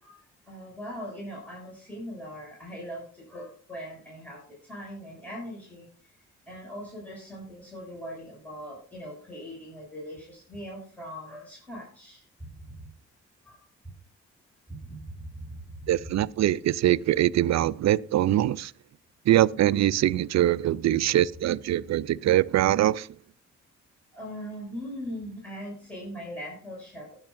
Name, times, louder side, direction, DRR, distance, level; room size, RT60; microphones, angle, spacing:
voice 1, 0.0-5.9 6.5-12.2 12.7-12.8 13.4-13.6 14.7-15.9 24.1-27.2, equal, 5° left, 6.6 m, -40 dB
voice 2, 15.9-18.7 19.3-23.1, right 13 dB, 55° right, 0.5 m, -23 dB
20.0 x 7.2 x 2.6 m
hypercardioid pair, 45°, 33 cm